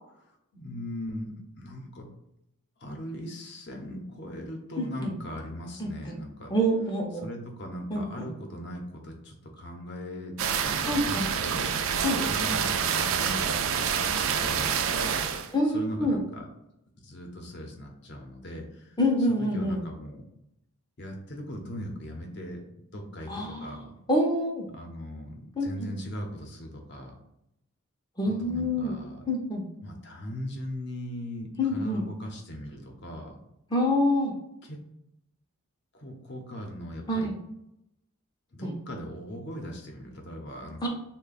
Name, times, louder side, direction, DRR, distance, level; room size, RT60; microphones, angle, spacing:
voice 1, 0.5-2.1 2.8-6.5 7.2-10.3 10.8-11.8 12.2-13.6 13.9-16.4 17.0-19.0 19.3-20.2 21.0-23.9 24.7-27.2 28.2-29.2 29.8-33.3 34.6-34.8 35.9-37.3 38.5-40.9, left 1 dB, 50° left, 2 dB, 0.7 m, -39 dB
voice 2, 4.8-5.1 5.8-6.2 6.5-7.2 7.9-8.3 10.9-11.3 12.0-12.2 15.5-16.2 19.0-19.8 23.3-23.8 24.1-24.7 25.6-25.9 28.2-29.0 29.3-29.6 31.6-32.0 33.7-34.3 37.1-37.3 38.6-38.7 40.8-40.9, left 1 dB, 20° left, -1 dB, 0.5 m, -26 dB
sound 1, 10.4-15.5, right 7 dB, 65° right, 0.3 m, -27 dB
3.3 x 2.2 x 3.9 m, 0.83 s
head